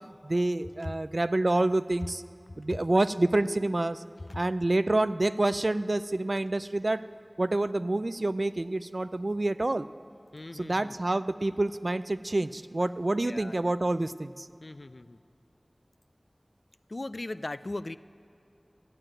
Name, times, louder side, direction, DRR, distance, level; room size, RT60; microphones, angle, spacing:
voice 1, 0.0-2.2 2.6-4.0 4.3-7.0 7.4-9.9 10.5-14.5, right 2 dB, 55° right, 14 dB, 0.3 m, -27 dB
voice 2, 10.3-10.9 13.2-13.6 14.6-15.2 16.9-18.0, left 2 dB, 60° left, 15 dB, 0.3 m, -38 dB
14.0 x 9.1 x 8.8 m, 2.6 s
wide cardioid pair, 50°, 0 cm